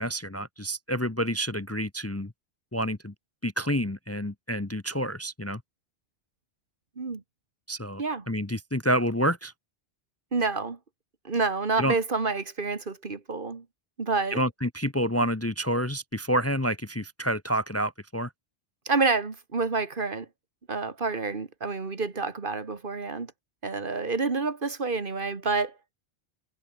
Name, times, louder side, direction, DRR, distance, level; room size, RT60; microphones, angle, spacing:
voice 1, 0.0-2.3 2.7-3.1 3.4-5.6 7.7-8.0 8.3-9.5 11.8-11.9 14.3-18.3, equal, 15° left, 0.9 m, -28 dB
voice 2, 10.3-10.8 11.2-13.7 14.0-14.4 18.9-20.3 20.7-23.3 23.6-25.7, right 4 dB, 55° right, 1.9 m, -28 dB
omnidirectional pair, 1.1 m